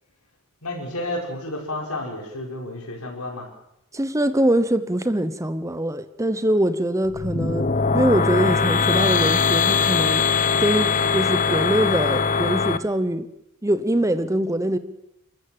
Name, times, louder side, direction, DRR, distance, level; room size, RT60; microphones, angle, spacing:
voice 1, 0.6-3.5, left 1 dB, 85° left, 1 dB, 5.7 m, -31 dB
voice 2, 3.9-7.7 7.9-10.3 10.6-13.3 13.6-14.8, right 1 dB, 15° right, 12 dB, 0.9 m, -23 dB
sound 1, 7.1-12.8, left 5 dB, 35° left, 0.9 m, -21 dB
29.5 x 13.5 x 7.7 m, 0.86 s
head